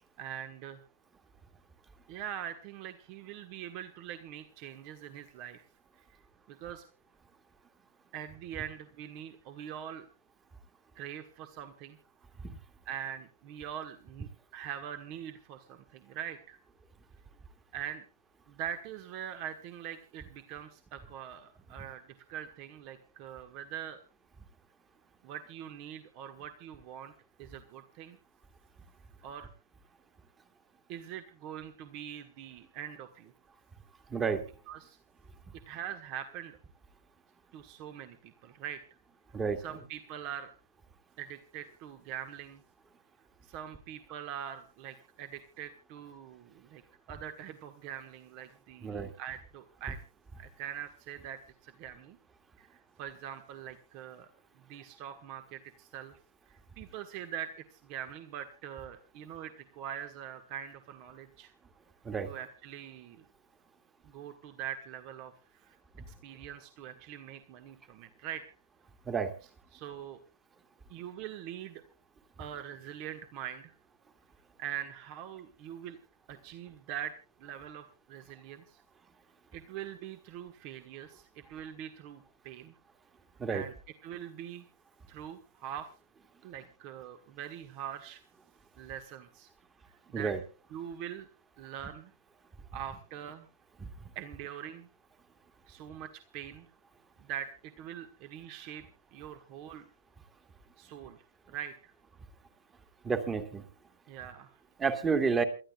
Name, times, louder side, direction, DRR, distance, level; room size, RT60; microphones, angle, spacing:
voice 1, 0.2-0.8 2.1-5.6 6.5-6.8 8.1-10.0 10.9-12.0 12.8-16.6 17.7-18.0 18.5-24.0 25.2-27.1 27.4-28.2 29.2-29.5 30.9-33.3 34.7-35.0 35.7-36.6 37.5-38.8 39.6-40.5 41.2-42.6 43.4-46.8 47.1-50.0 50.4-52.2 52.6-54.3 54.5-56.2 56.5-61.5 62.2-63.2 64.0-65.8 66.1-68.4 69.7-70.2 70.9-71.8 72.4-73.7 74.6-76.0 76.3-78.8 79.5-82.7 83.5-83.7 84.0-84.7 85.1-85.9 86.4-88.2 88.8-89.5 90.1-90.3 90.7-91.3 91.6-92.1 92.7-93.5 94.1-94.9 95.7-96.7 97.2-98.8 99.1-99.9 100.8-101.2 101.5-101.9 104.1-104.6, right 10 dB, 40° right, 8 dB, 1.4 m, -43 dB
voice 2, 34.1-34.4 39.3-39.6 48.8-49.1 62.0-62.3 69.1-69.3 83.4-83.6 90.1-90.4 103.0-103.6 104.8-105.4, right 5 dB, 15° right, 8 dB, 2.0 m, -30 dB
28.5 x 13.0 x 2.3 m, 0.35 s
figure-of-eight pair, 110°, 0 cm